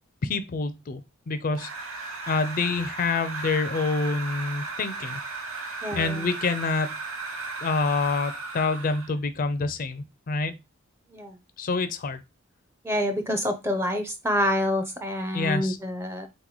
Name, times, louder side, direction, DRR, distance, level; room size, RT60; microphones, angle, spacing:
voice 1, 0.2-1.0 1.3-1.7 2.3-5.2 5.9-7.0 7.6-10.6 11.6-12.2 15.3-15.8, left 3 dB, 40° left, 0.4 m, -27 dB
sound 1, 1.5-9.2, right 3 dB, 75° right, 0.9 m, -36 dB
voice 2, 5.8-6.3 11.1-11.4 12.8-16.3, equal, 10° right, 0.5 m, -27 dB
3.9 x 3.0 x 3.9 m
head